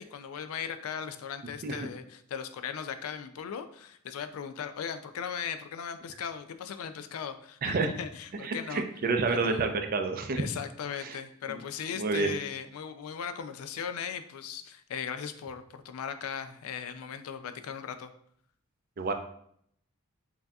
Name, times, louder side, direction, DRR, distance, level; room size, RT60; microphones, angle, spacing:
voice 1, 0.0-8.8 9.3-9.7 10.4-18.1, left 7 dB, 75° left, 10 dB, 0.4 m, -38 dB
voice 2, 8.4-10.4 11.0-11.2 11.5-11.6 12.0-12.3 19.0-19.1, right 4 dB, 45° right, 6 dB, 0.4 m, -29 dB
5.6 x 2.7 x 2.3 m, 0.67 s
head